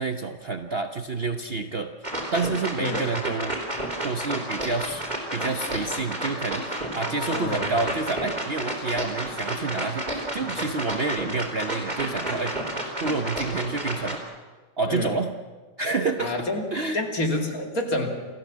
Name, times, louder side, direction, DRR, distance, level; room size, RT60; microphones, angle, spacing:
voice 1, 0.0-1.9 2.3-3.6 4.0-5.0 5.3-12.5 13.0-14.2 14.8-15.3 15.8-16.3 16.7-17.0, right 3 dB, 45° right, 6 dB, 1.0 m, -28 dB
sound 1, 2.0-14.2, right 1 dB, 25° right, 4.3 m, -31 dB
voice 2, 7.0-7.7 10.4-10.5 14.9-15.2 16.2-16.6 16.9-18.2, left 1 dB, 55° left, 2 dB, 3.1 m, -28 dB
28.0 x 15.5 x 7.5 m, 1.3 s
omnidirectional pair, 1.9 m